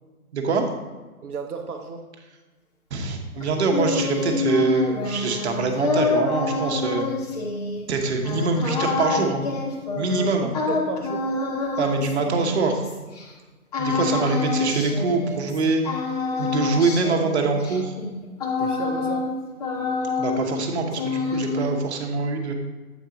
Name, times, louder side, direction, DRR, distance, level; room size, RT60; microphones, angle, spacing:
voice 1, 0.3-0.6 2.9-7.0 7.9-9.4 9.9-10.5 11.8-12.8 13.8-16.0 16.4-17.9 20.2-22.5, right 4 dB, 45° right, 3 dB, 1.0 m, -24 dB
voice 2, 1.2-2.1 10.2-11.3 13.9-14.1 18.6-19.3, right 5 dB, 75° right, 3 dB, 0.8 m, -34 dB
sound 1, 3.4-13.3 13.7-15.6 15.8-19.3 19.6-20.6 20.9-21.9, left 3 dB, 25° left, 0.8 m, -27 dB
8.0 x 4.5 x 3.8 m, 1.3 s
figure-of-eight pair, 140°, 45 cm